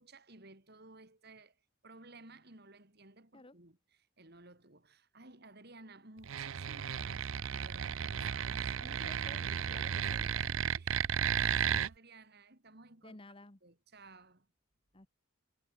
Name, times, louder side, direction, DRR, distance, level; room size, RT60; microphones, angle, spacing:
voice 1, 0.0-1.6 1.8-13.2 13.6-14.5, right 3 dB, 50° right, 3.1 m, -56 dB
sound 1, 6.2-11.9, right 8 dB, 70° right, 0.5 m, -34 dB
voice 2, 8.8-10.3 13.0-13.6 14.9-15.1, left 2 dB, 25° left, 1.2 m, -54 dB
head